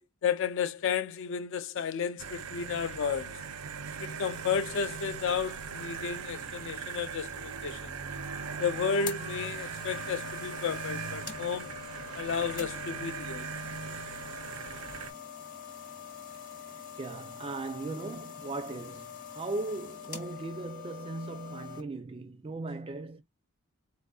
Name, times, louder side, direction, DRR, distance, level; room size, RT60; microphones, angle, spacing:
voice 1, 0.2-3.4 4.0-7.9 8.6-11.7 12.2-13.5, left 6 dB, 55° left, 0.4 m, -32 dB
sound 1, 2.2-15.1, right 6 dB, 85° right, 0.6 m, -39 dB
sound 2, 7.8-21.8, left 7 dB, 35° left, 1.0 m, -45 dB
voice 2, 17.0-23.2, right 2 dB, 25° right, 0.4 m, -38 dB
4.2 x 2.5 x 2.3 m
head